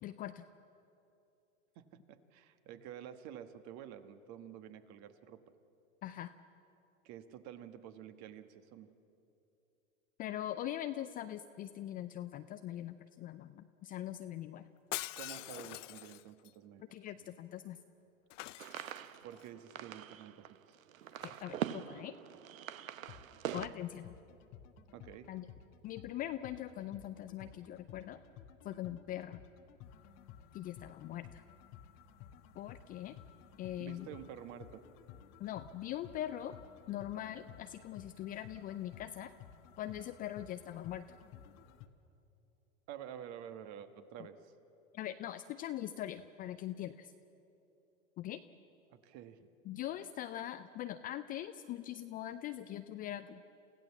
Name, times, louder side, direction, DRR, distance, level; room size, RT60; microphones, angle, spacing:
voice 1, 0.0-0.4 6.0-6.3 10.2-14.7 16.8-17.8 21.2-22.1 23.5-24.1 25.3-25.5 25.8-28.2 28.6-29.4 30.5-31.4 32.6-33.2 33.6-34.1 35.4-36.6 36.9-39.3 39.8-41.1 44.9-47.1 48.2-48.4 49.7-53.5, left 12 dB, 20° left, 10 dB, 0.4 m, -42 dB
voice 2, 1.7-5.4 7.0-8.9 15.1-16.9 17.2-17.3 19.2-20.8 24.9-25.3 33.8-34.8 42.9-44.5 48.9-49.5, right 10 dB, 40° right, 10 dB, 1.5 m, -50 dB
Shatter, 14.9-16.5 18.3-19.4 21.1-21.4, left 17 dB, 65° left, 0.6 m, -44 dB
sound 1, 18.6-23.7, right 10 dB, 75° right, 0.9 m, -43 dB
sound 2, 23.0-41.9, left 9 dB, 40° left, 1.3 m, -55 dB
28.5 x 15.5 x 7.3 m, 2.8 s
hypercardioid pair, 105°, 41 cm